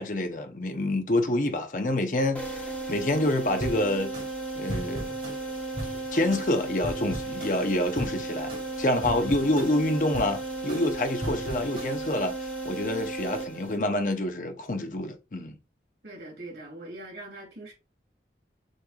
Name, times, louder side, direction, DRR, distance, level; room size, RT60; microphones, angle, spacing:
voice 1, 0.0-4.1 4.6-5.1 6.1-15.6, left 1 dB, 45° left, 0.7 m, -27 dB
sound 1, 2.3-14.1, right 2 dB, 10° left, 1.5 m, -35 dB
sound 2, 3.6-12.3, right 1 dB, 35° right, 2.3 m, -39 dB
voice 2, 16.0-17.7, right 2 dB, 70° right, 2.6 m, -42 dB
6.4 x 3.2 x 2.4 m
head